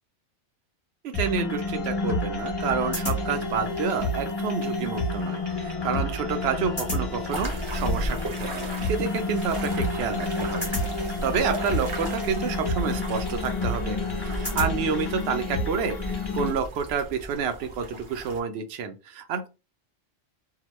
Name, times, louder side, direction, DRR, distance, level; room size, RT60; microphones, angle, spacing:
voice 1, 1.0-10.7 11.0-14.0 14.2-19.5, right 6 dB, 65° right, 0.8 m, -29 dB
sound 1, 1.1-16.5, left 2 dB, 20° left, 1.1 m, -29 dB
sound 2, 7.3-18.4, right 1 dB, 30° right, 0.6 m, -35 dB
2.8 x 2.1 x 3.0 m
omnidirectional pair, 1.3 m